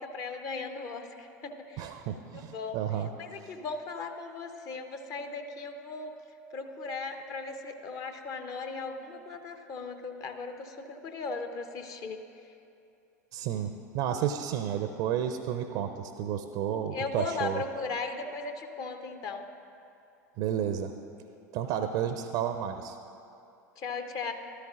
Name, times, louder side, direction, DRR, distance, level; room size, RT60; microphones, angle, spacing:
voice 1, 0.0-2.8 3.2-6.2 6.5-12.2 16.9-19.5 23.8-24.3, left 4 dB, 40° left, 6 dB, 0.8 m, -37 dB
voice 2, 1.8-3.1 3.4-3.5 13.3-17.6 20.4-20.9 21.5-23.0, right 9 dB, 50° right, 8 dB, 0.5 m, -31 dB
14.5 x 12.5 x 2.5 m, 2.7 s
figure-of-eight pair, 80°, 9 cm